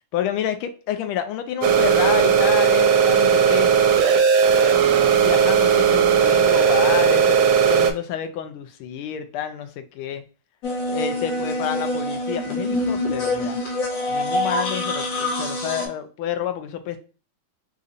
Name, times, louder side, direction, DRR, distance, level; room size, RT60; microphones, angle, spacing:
voice 1, 0.1-3.7 5.2-10.2 10.9-13.6 14.1-17.0, left 10 dB, 85° left, 1.5 m, -29 dB
sound 1, 1.6-7.9, right 7 dB, 80° right, 1.4 m, -17 dB
sound 2, 10.6-15.9, left 1 dB, 65° left, 1.4 m, -25 dB
4.1 x 2.4 x 2.5 m
omnidirectional pair, 2.3 m